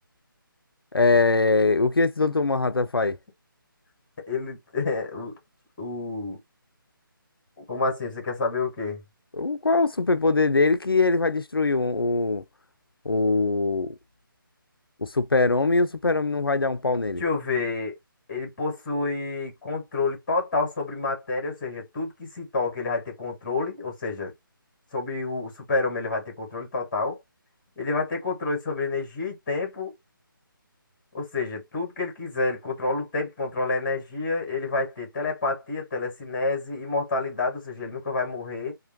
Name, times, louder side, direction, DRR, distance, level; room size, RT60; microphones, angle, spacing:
voice 1, 0.9-3.2 9.4-12.4 13.1-13.9 15.0-17.2, left 3 dB, 90° left, 0.4 m, -22 dB
voice 2, 4.2-5.3 5.8-6.4 7.6-9.0 17.2-17.9 18.3-24.3 24.9-27.2 27.8-29.9 31.1-38.7, left 3 dB, 20° left, 1.4 m, -29 dB
3.3 x 2.1 x 2.9 m
figure-of-eight pair, 150°, 12 cm